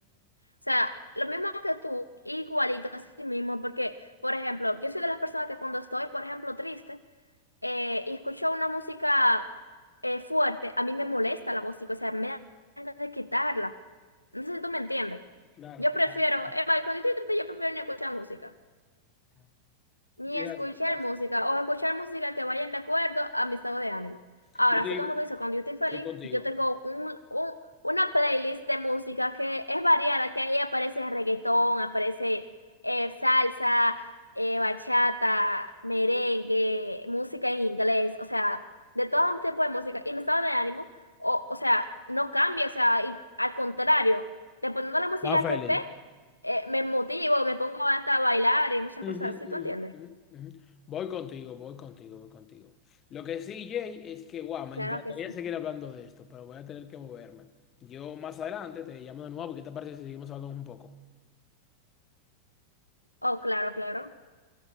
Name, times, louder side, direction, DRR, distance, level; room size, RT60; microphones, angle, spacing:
voice 1, 0.7-3.9 4.2-7.0 7.6-9.5 10.0-12.4 12.8-13.7 14.3-15.2 15.8-18.5 20.2-24.2 24.5-27.6 27.8-32.4 32.8-34.0 34.4-38.6 39.0-40.9 41.2-44.3 44.6-45.8 46.4-49.9 54.8-55.2 63.2-64.1, left 1 dB, 85° left, 0.7 m, -28 dB
voice 2, 20.3-20.6 20.9-21.0 24.8-25.1 25.9-26.4 45.2-45.8 49.0-50.6 50.9-52.7 53.1-57.5 57.8-60.9, left 9 dB, 30° left, 1.5 m, -38 dB
28.0 x 24.0 x 5.8 m
figure-of-eight pair, 90°, 0 cm